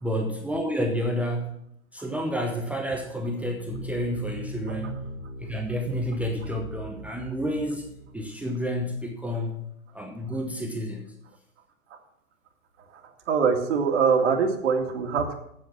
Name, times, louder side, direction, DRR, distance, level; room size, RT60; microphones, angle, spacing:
voice 1, 0.0-1.5 1.9-5.0 5.4-7.9 8.1-9.7 9.9-11.0, equal, 5° right, 2 dB, 0.8 m, -30 dB
sound 1, 3.7-8.7, right 1 dB, 35° left, 3.4 m, -40 dB
voice 2, 13.3-15.3, right 5 dB, 60° right, 4 dB, 2.1 m, -23 dB
9.1 x 7.2 x 7.3 m, 0.76 s
hypercardioid pair, 125°, 41 cm